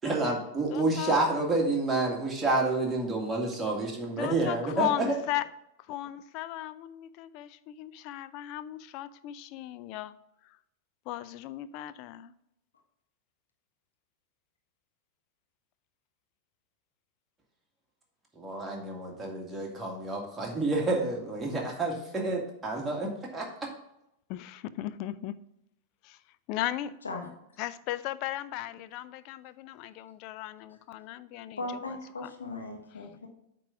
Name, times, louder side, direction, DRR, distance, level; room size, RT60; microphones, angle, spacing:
voice 1, 0.0-4.9 18.4-23.5, right 2 dB, 10° right, -1 dB, 2.1 m, -29 dB
voice 2, 0.7-1.2 4.2-5.4 5.9-10.2 11.1-12.3 24.3-25.4 26.0-26.2 26.5-26.9 27.6-32.0 32.2-32.3 32.9-33.1, left 13 dB, 45° left, 14 dB, 0.4 m, -36 dB
voice 3, 31.6-33.3, left 2 dB, 75° left, 3 dB, 1.3 m, -38 dB
8.6 x 3.8 x 5.8 m, 0.80 s
figure-of-eight pair, 90°, 0 cm